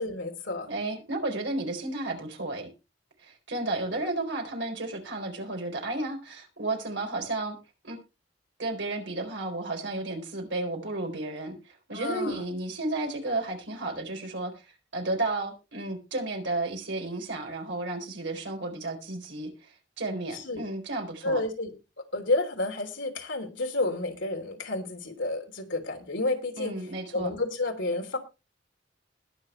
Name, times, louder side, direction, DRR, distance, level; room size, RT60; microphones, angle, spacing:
voice 1, 0.0-0.7 11.9-12.4 20.3-20.6 21.2-21.7 22.1-26.7 27.1-28.2, left 2 dB, 70° left, 3 dB, 3.4 m, -30 dB
voice 2, 0.7-2.7 3.2-7.6 7.8-8.0 8.6-14.6 14.9-21.4 26.6-27.3, right 2 dB, 65° right, 4 dB, 4.2 m, -33 dB
21.0 x 7.0 x 3.2 m, 0.29 s
head